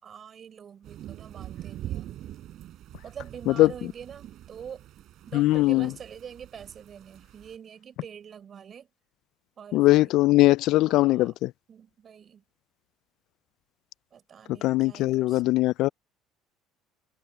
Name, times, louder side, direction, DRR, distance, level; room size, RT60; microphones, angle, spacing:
voice 1, 0.0-2.2 3.0-4.9 5.3-8.9 9.6-10.2 10.7-11.4 11.7-12.4 14.1-15.5, right 8 dB, 40° right, 4.1 m, -45 dB
sound 1, 0.8-7.6, right 13 dB, 60° right, 5.1 m, -43 dB
voice 2, 5.3-5.9 9.7-11.5 14.6-15.9, left 18 dB, 65° left, 0.3 m, -21 dB
cardioid pair, 110°, 0 cm